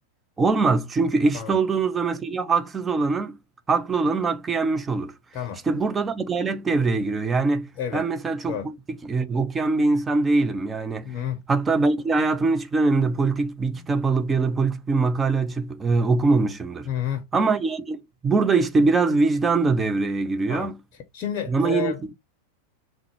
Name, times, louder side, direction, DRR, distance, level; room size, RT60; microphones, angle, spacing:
voice 1, 0.4-3.4 3.7-5.1 5.6-11.1 11.5-16.9 17.3-20.8 21.5-22.1, right 3 dB, 15° right, 0.4 m, -23 dB
voice 2, 11.0-11.4 16.9-17.2 20.5-20.7 21.1-22.0, left 9 dB, 35° left, 0.6 m, -30 dB
3.5 x 2.1 x 3.0 m
figure-of-eight pair, 90°, 0 cm